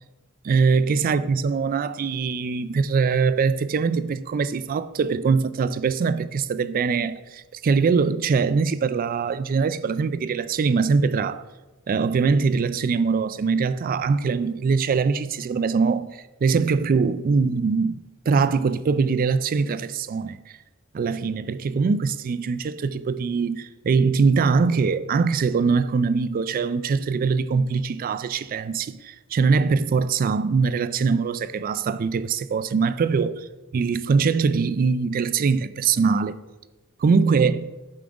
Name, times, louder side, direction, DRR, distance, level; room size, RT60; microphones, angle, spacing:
voice 1, 0.4-11.4 11.9-18.0 18.3-20.4 20.9-36.4 37.0-37.7, right 5 dB, 45° right, 0.3 m, -22 dB
8.6 x 3.8 x 4.7 m
head